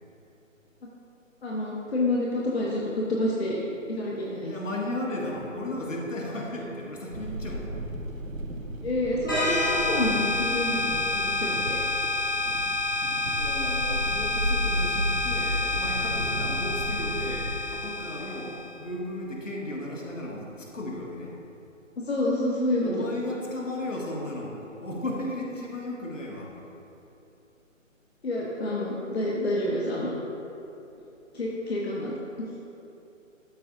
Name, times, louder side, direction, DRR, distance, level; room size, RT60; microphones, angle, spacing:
voice 1, 1.4-3.6 3.9-4.5 8.8-11.8 22.0-23.4 28.2-30.1 31.3-32.5, left 1 dB, 50° left, -4 dB, 0.9 m, -28 dB
voice 2, 4.5-7.8 13.3-21.4 22.8-26.5, left 1 dB, 70° left, -2 dB, 1.6 m, -35 dB
sound 1, 7.1-17.5, equal, 85° right, 0.8 m, -34 dB
sound 2, 9.3-18.7, left 2 dB, 15° left, 0.6 m, -28 dB
12.5 x 4.6 x 2.6 m, 2.9 s
figure-of-eight pair, 145°, 39 cm